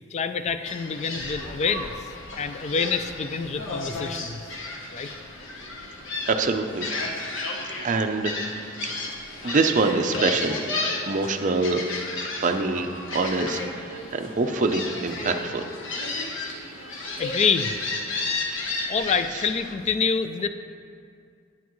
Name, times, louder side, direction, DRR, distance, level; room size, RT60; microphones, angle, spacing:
voice 1, 0.1-2.1 2.4-4.4 4.9-5.1 17.2-17.7 18.9-20.5, left 5 dB, 35° left, 10 dB, 0.3 m, -26 dB
Gull seagull, 0.7-19.7, left 2 dB, 70° left, 1.1 m, -33 dB
voice 2, 6.3-6.9 7.8-8.3 8.8-9.0 9.4-10.5 11.1-11.8 12.4-15.6 18.5-18.9, right 3 dB, 40° right, 6 dB, 0.5 m, -25 dB
9.3 x 9.2 x 3.1 m, 2.3 s
head